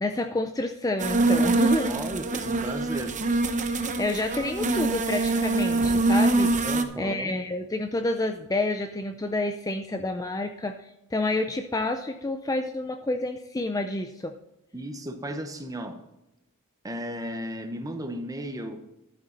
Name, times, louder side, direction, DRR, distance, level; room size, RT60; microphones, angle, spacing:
voice 1, 0.0-2.0 4.0-6.5 7.0-14.3, left 2 dB, 15° left, 6 dB, 0.5 m, -29 dB
sound 1, 1.0-6.8, right 2 dB, 35° right, 0.8 m, -24 dB
voice 2, 1.9-3.2 6.6-7.4 14.7-16.0 16.8-18.8, right 1 dB, 15° right, 6 dB, 1.1 m, -35 dB
12.0 x 8.4 x 4.1 m, 0.90 s
head